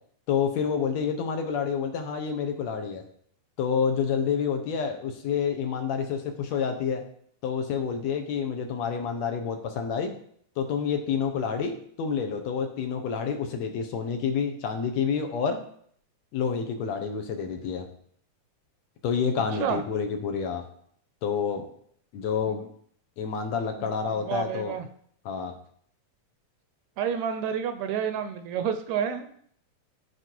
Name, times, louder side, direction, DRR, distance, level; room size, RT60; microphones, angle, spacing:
voice 1, 0.3-3.0 3.6-7.0 7.4-10.1 10.6-15.6 16.3-17.9 19.0-20.6 21.2-21.6 22.1-22.6 23.2-24.7 25.3-25.5, left 6 dB, 70° left, 5 dB, 2.1 m, -28 dB
voice 2, 23.7-24.9 27.0-29.3, right 7 dB, 75° right, 9 dB, 1.9 m, -30 dB
13.5 x 4.8 x 4.6 m, 0.64 s
omnidirectional pair, 3.5 m